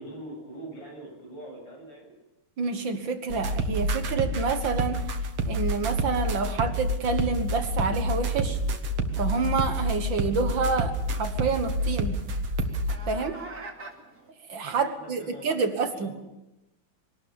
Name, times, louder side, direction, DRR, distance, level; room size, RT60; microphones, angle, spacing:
voice 1, 0.0-2.1 14.8-16.2, right 1 dB, 55° left, 1 dB, 8.2 m, -42 dB
voice 2, 2.6-5.1 5.4-8.6 9.2-12.2 13.1-13.4 14.5-16.1, right 4 dB, 60° right, 7 dB, 2.1 m, -28 dB
sound 1, 3.3-13.0, right 1 dB, 90° right, 2.6 m, -28 dB
sound 2, 8.2-14.3, right 3 dB, 45° right, 3.1 m, -48 dB
23.0 x 18.5 x 7.1 m, 0.93 s
omnidirectional pair, 2.4 m